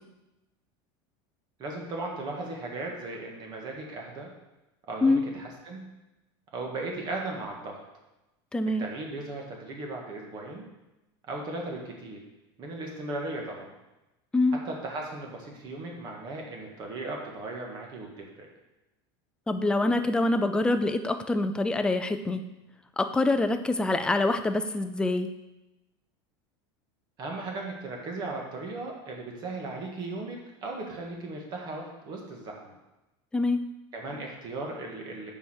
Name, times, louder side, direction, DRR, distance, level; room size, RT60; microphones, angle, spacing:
voice 1, 1.6-4.3 4.9-5.8 6.5-7.8 8.8-10.7 11.3-12.2 12.6-13.7 14.5-18.5 27.2-32.7 33.9-35.3, right 2 dB, 35° right, 0 dB, 1.8 m, -37 dB
voice 2, 8.5-8.9 14.3-14.6 19.5-22.4 23.0-25.3 33.3-33.6, left 2 dB, 5° left, 8 dB, 0.4 m, -25 dB
6.9 x 4.9 x 6.3 m, 0.99 s
supercardioid pair, 150°, 13 cm